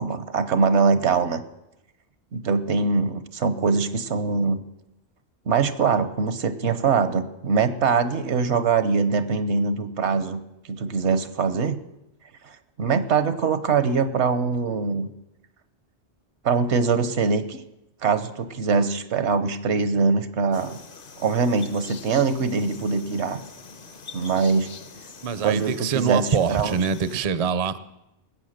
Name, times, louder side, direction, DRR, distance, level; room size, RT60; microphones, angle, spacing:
voice 1, 0.0-1.4 2.3-4.6 5.5-10.4 10.7-11.8 12.4-15.1 16.4-17.6 18.0-20.8 21.2-23.4 24.1-24.7 25.4-26.8, right 5 dB, 80° right, 12 dB, 1.2 m, -23 dB
sound 1, 20.5-27.2, left 4 dB, 55° left, 1.0 m, -44 dB
voice 2, 25.2-27.8, right 6 dB, 40° right, 14 dB, 0.5 m, -24 dB
20.0 x 8.1 x 6.5 m, 0.92 s
omnidirectional pair, 1.2 m